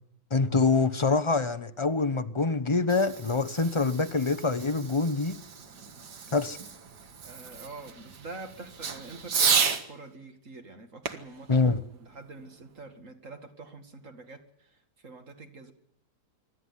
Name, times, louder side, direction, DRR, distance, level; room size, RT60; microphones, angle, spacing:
voice 1, 0.3-5.4 6.3-6.6 11.5-11.8, left 3 dB, 25° left, 11 dB, 0.8 m, -25 dB
Fireworks, 2.6-9.9 11.0-12.7, right 6 dB, 80° right, 2.2 m, -33 dB
voice 2, 7.2-11.7 12.0-15.7, right 3 dB, 50° right, 6 dB, 2.5 m, -46 dB
25.5 x 13.0 x 9.6 m, 0.74 s
omnidirectional pair, 1.8 m